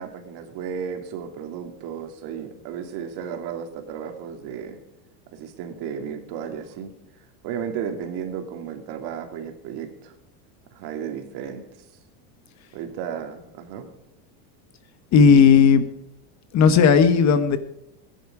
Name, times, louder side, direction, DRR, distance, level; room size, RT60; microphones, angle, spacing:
voice 1, 0.0-4.8 5.3-6.9 7.4-10.1 10.7-11.6 12.7-13.9, right 7 dB, 55° right, 6 dB, 2.6 m, -34 dB
voice 2, 15.1-15.8 16.5-17.6, left 6 dB, 35° left, 12 dB, 1.1 m, -14 dB
16.0 x 10.5 x 4.9 m, 0.82 s
supercardioid pair, 130°, 47 cm